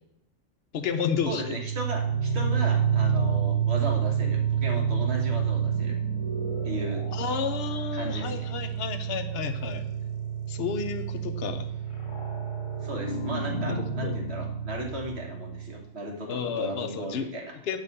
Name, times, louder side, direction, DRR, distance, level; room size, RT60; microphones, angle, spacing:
voice 1, 0.7-1.5 7.1-9.9 10.5-11.7 13.7-14.1 16.3-17.3 17.7-17.8, left 6 dB, 55° left, 6 dB, 0.9 m, -31 dB
sound 1, 1.2-15.8, right 7 dB, 25° left, 0.9 m, -29 dB
voice 2, 1.3-6.0 6.6-7.1 7.9-8.5 12.8-17.5, right 1 dB, 55° right, 1 dB, 1.8 m, -36 dB
9.1 x 3.3 x 6.7 m, 0.80 s
omnidirectional pair, 1.4 m